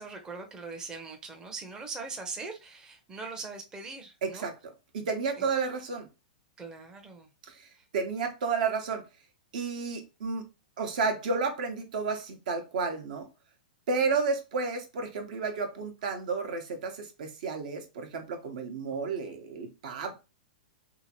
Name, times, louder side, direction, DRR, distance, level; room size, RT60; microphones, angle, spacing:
voice 1, 0.0-4.5 5.4-5.5 6.6-7.3 7.8-7.9 19.2-19.4, right 4 dB, 15° right, 0.6 m, -41 dB
voice 2, 4.2-4.5 4.9-6.1 7.6-7.7 7.9-9.0 9.5-10.4 10.8-13.3 13.9-20.1, right 4 dB, 65° right, 0.8 m, -31 dB
2.8 x 2.5 x 2.8 m
hypercardioid pair, 125°, 5 cm